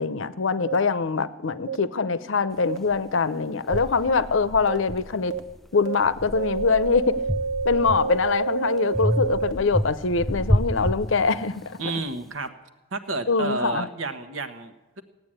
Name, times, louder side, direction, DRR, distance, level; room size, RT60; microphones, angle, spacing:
voice 1, 0.0-5.3 5.7-7.2 7.6-11.8 13.3-13.9, left 4 dB, 75° left, 15 dB, 0.7 m, -23 dB
sound 1, 0.7-0.8 1.7-1.8 2.7-2.8 3.7-3.8 4.7-4.8 5.3-5.4 5.9-6.0 6.4-9.5, right 4 dB, 65° right, 1.4 m, -28 dB
sound 2, 2.9-3.0 3.7-5.6 6.0-8.4 8.9-11.7, equal, ahead, 0.4 m, -29 dB
voice 2, 11.8-12.5 12.9-15.0, right 3 dB, 85° right, 9 dB, 1.3 m, -31 dB
16.5 x 9.4 x 8.9 m, 1.1 s
head